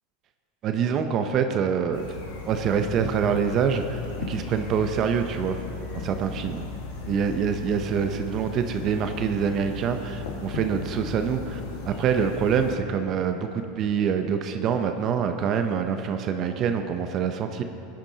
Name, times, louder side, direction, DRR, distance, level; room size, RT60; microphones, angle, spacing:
voice 1, 0.6-2.0 2.5-4.0 4.3-5.6 5.9-6.6 7.1-17.6, right 7 dB, 40° right, 6 dB, 0.7 m, -25 dB
sound 1, 1.9-12.7, left 4 dB, 75° left, 1.6 m, -37 dB
16.0 x 10.0 x 2.8 m, 2.7 s
supercardioid pair, 120°, 0 cm